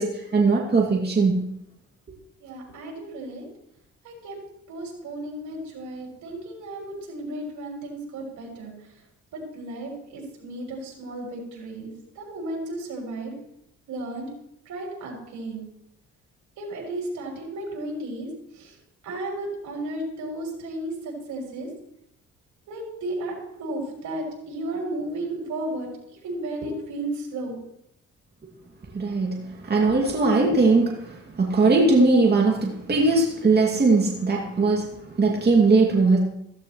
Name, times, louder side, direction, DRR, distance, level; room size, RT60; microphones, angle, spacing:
voice 1, 0.0-1.5 28.9-36.2, right 3 dB, 35° right, -1 dB, 2.4 m, -20 dB
voice 2, 2.4-3.5 4.0-4.4 4.7-8.7 9.3-13.3 13.9-14.3 14.7-15.7 16.6-18.8 19.0-21.7 22.7-25.9 26.2-27.6, right 1 dB, 80° right, -1 dB, 6.1 m, -34 dB
15.5 x 15.0 x 3.2 m, 0.78 s
cardioid pair, 90°, 30 cm